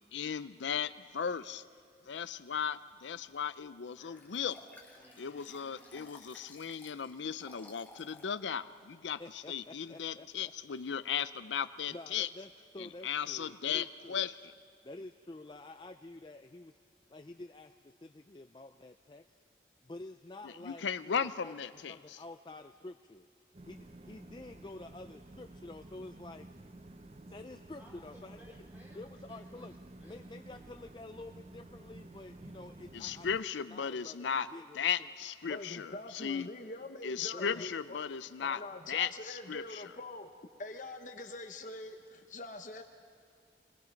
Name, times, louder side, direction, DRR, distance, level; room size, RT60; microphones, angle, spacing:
voice 1, 0.1-1.6 2.1-4.5 5.2-12.3 12.8-14.5 20.4-22.2 32.9-34.5 34.7-36.5 37.0-38.6 38.9-39.9, left 7 dB, 90° left, 14 dB, 0.5 m, -36 dB
voice 2, 4.0-6.0 27.8-29.0 29.3-30.2, equal, 10° right, -3 dB, 4.4 m, -60 dB
Liquid, 4.2-8.3 8.8-8.9, left 2 dB, 10° left, 1.6 m, -56 dB
voice 3, 9.2-10.5 11.9-14.3 14.8-16.7 17.1-19.2 19.8-21.6 21.9-23.3 23.6-26.5 27.3-28.4 28.9-29.8 30.0-33.3 33.7-34.9 37.3-37.7, left 2 dB, 25° left, 7 dB, 0.4 m, -49 dB
sound 1, 23.5-33.4, right 2 dB, 35° right, 0.6 m, -52 dB
voice 4, 35.5-38.0 38.4-40.3 40.6-42.8, left 2 dB, 45° left, 5 dB, 1.0 m, -44 dB
27.5 x 20.5 x 5.2 m, 2.3 s
head